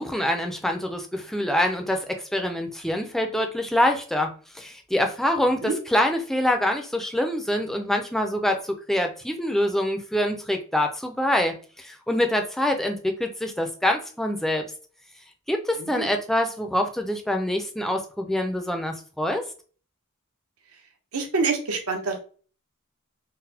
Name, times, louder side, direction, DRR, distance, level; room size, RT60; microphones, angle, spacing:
voice 1, 0.0-14.7 15.5-19.4, left 1 dB, ahead, 4 dB, 0.3 m, -25 dB
voice 2, 15.7-16.1 21.1-22.2, right 4 dB, 75° right, 4 dB, 0.7 m, -26 dB
3.9 x 2.0 x 2.7 m, 0.40 s
head